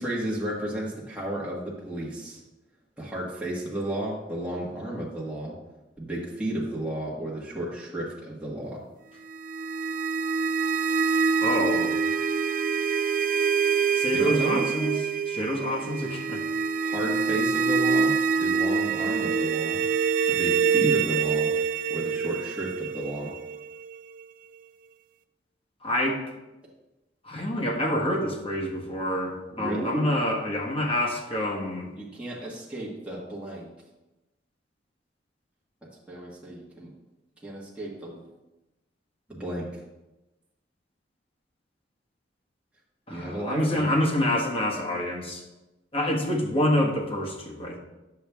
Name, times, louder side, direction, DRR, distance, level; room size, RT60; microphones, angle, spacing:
voice 1, 0.0-2.4 3.0-5.5 6.0-8.8 14.1-15.0 16.8-18.1 18.4-19.8 20.3-21.5 21.9-23.3 29.5-30.0 32.0-33.7 35.8-36.9 37.4-38.2 39.3-39.7 43.1-43.9, right 1 dB, 5° right, -6 dB, 1.4 m, -33 dB
sound 1, 9.3-24.2, right 6 dB, 45° right, 0.4 m, -26 dB
voice 2, 11.4-12.0 13.9-15.0 15.3-16.4 25.8-26.2 27.2-31.9 43.1-45.4 45.9-47.8, left 1 dB, 30° left, -1 dB, 1.4 m, -27 dB
9.8 x 7.0 x 3.5 m, 1.0 s
head